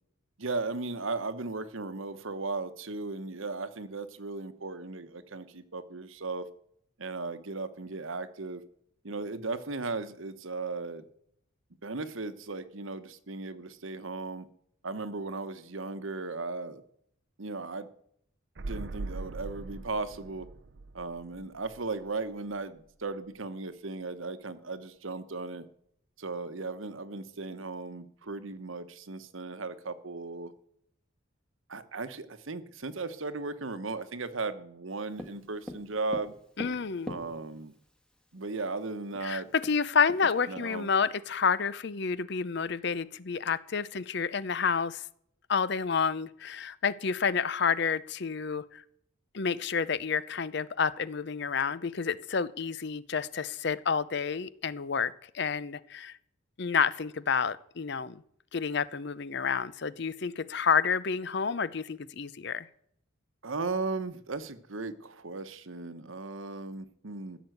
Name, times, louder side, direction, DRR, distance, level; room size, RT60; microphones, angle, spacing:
voice 1, 0.4-6.5 7.0-8.6 9.0-11.0 11.8-14.5 14.8-16.8 17.4-17.9 18.7-20.5 20.9-25.6 26.2-30.5 31.7-36.3 37.1-37.7 38.3-39.5 40.5-40.9 63.4-67.4, right 3 dB, 70° right, 12 dB, 1.1 m, -36 dB
sound 1, 18.6-22.3 22.6-22.7, right 2 dB, 55° right, 0.6 m, -41 dB
Tap, 35.2-37.8 38.8-38.9 39.2-39.3 39.6-41.0, left 1 dB, 5° left, 1.4 m, -43 dB
voice 2, 36.6-37.1 39.2-45.1 45.5-48.8 49.3-56.2 56.6-58.2 58.5-62.7, left 6 dB, 55° left, 18 dB, 0.6 m, -29 dB
15.5 x 7.1 x 7.9 m, 0.70 s
head